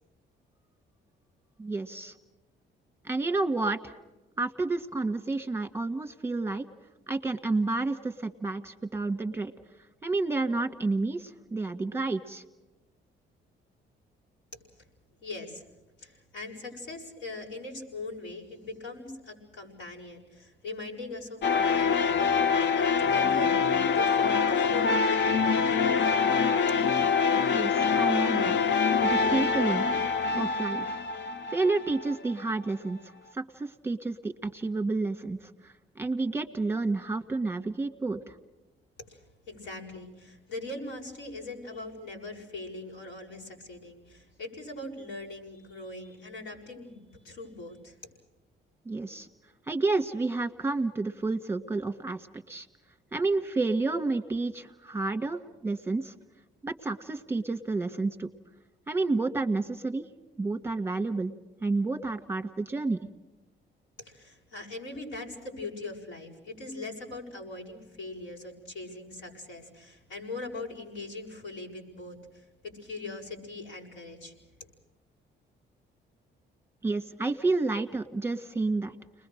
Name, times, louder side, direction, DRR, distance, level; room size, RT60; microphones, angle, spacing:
voice 1, 1.6-2.1 3.0-3.9 4.4-6.6 7.1-9.5 10.0-12.4 27.5-28.6 29.0-29.8 30.4-31.0 31.5-38.3 48.8-49.3 49.7-52.7 53.1-56.1 56.6-58.3 58.9-60.0 60.4-61.3 61.6-63.0 76.8-78.9, right 3 dB, 10° right, 6 dB, 1.7 m, -30 dB
voice 2, 15.2-15.6 16.0-26.1 39.1-48.0 64.0-74.4, left 2 dB, 80° left, -1 dB, 7.1 m, -41 dB
sound 1, 21.4-32.3, left 5 dB, 65° left, 0.9 m, -25 dB
30.0 x 21.5 x 6.6 m, 1.0 s
cardioid pair, 90°, 20 cm